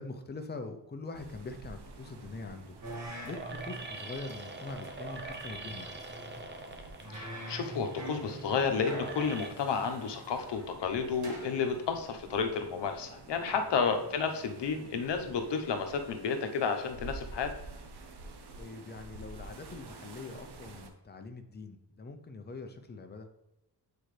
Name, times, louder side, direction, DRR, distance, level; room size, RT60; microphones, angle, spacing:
voice 1, 0.0-2.8 3.2-6.0 13.5-13.6 18.6-23.3, left 3 dB, 25° left, 6 dB, 0.6 m, -43 dB
sound 1, 1.1-20.9, right 3 dB, 70° right, 0.9 m, -50 dB
sound 2, 2.0-9.5, right 3 dB, 25° right, 0.6 m, -44 dB
sound 3, 2.8-14.2, right 1 dB, 40° right, 1.6 m, -46 dB
voice 2, 7.1-17.5, left 5 dB, 80° left, 5 dB, 1.0 m, -31 dB
8.7 x 4.5 x 3.3 m, 0.92 s
wide cardioid pair, 175°, 42 cm